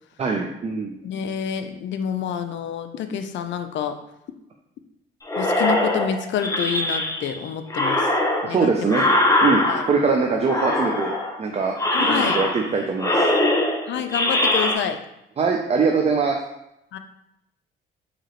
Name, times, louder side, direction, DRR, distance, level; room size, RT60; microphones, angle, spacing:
voice 1, 0.2-1.0 8.4-9.1 9.4-11.1 11.4-13.3 15.4-16.4, right 4 dB, 30° right, 2 dB, 0.4 m, -22 dB
voice 2, 1.0-4.0 5.4-8.1 8.4-8.9 9.6-9.8 11.9-12.4 13.9-15.0 16.9-17.0, left 8 dB, 70° left, 8 dB, 0.5 m, -28 dB
sound 1, 5.3-7.4 7.7-10.1 10.5-11.4 11.8-12.7 13.0-14.8, left 1 dB, 15° left, 0.7 m, -22 dB
4.7 x 2.9 x 3.0 m, 0.82 s
cardioid pair, 90°, 20 cm